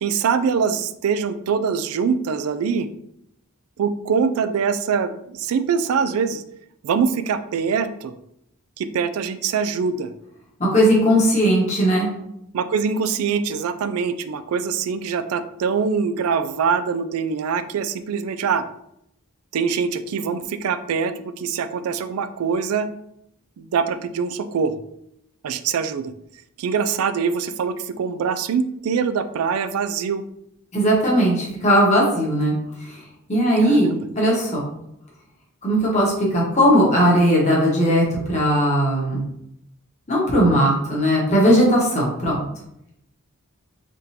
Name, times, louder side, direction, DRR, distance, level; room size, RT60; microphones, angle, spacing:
voice 1, 0.0-2.9 3.8-6.4 6.8-8.2 8.8-10.1 12.5-18.6 19.5-22.9 23.6-24.7 25.4-26.1 26.6-30.2 33.6-34.0, right 6 dB, 80° right, 11 dB, 0.3 m, -23 dB
voice 2, 10.6-12.1 30.7-32.5 32.9-33.0 33.3-34.7 35.6-39.2 40.1-42.4, equal, 30° left, -4 dB, 1.2 m, -18 dB
3.7 x 3.7 x 2.8 m, 0.78 s
head